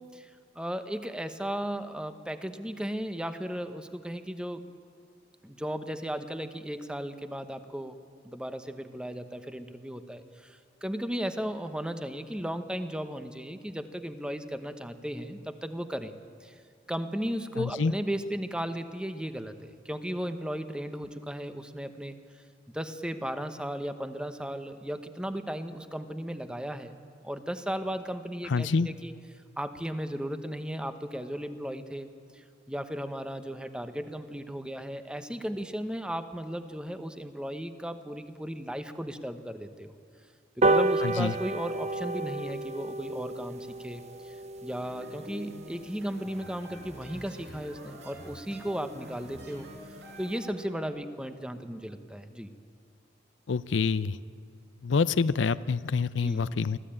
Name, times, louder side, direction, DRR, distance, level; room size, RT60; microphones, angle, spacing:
voice 1, 0.0-4.6 5.4-8.0 8.2-16.1 16.4-16.6 16.9-22.1 22.7-26.9 27.2-29.1 29.6-32.1 32.3-39.9 40.6-44.3 44.6-52.5 56.1-56.4, equal, 5° right, 9 dB, 0.9 m, -35 dB
voice 2, 17.6-17.9 28.5-28.9 41.0-41.3 53.5-54.2 54.8-56.8, left 4 dB, 90° left, 16 dB, 0.5 m, -27 dB
sound 1, 40.6-47.4 47.8-47.9 48.2-48.3 48.6-48.7 49.0-49.1 49.4-49.6 50.1-50.2, right 2 dB, 40° right, 0.7 m, -31 dB
sound 2, 44.7-50.9, equal, 70° right, 5.0 m, -46 dB
24.0 x 15.0 x 8.8 m, 2.3 s
head